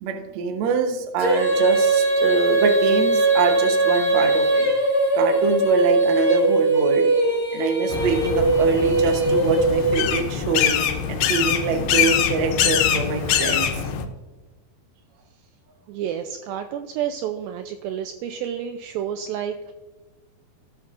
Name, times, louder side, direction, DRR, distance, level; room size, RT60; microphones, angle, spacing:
voice 1, 0.0-4.7 5.1-7.1 7.5-10.7 11.1-13.7, right 4 dB, 70° right, 4 dB, 1.7 m, -24 dB
Female singing, 1.2-10.3, right 2 dB, 25° right, 3.1 m, -20 dB
sound 1, 7.9-14.0, left 8 dB, 75° left, 2.6 m, -23 dB
voice 2, 15.9-19.7, right 9 dB, 90° right, 6 dB, 2.0 m, -30 dB
17.0 x 5.9 x 2.5 m, 1.2 s
omnidirectional pair, 4.7 m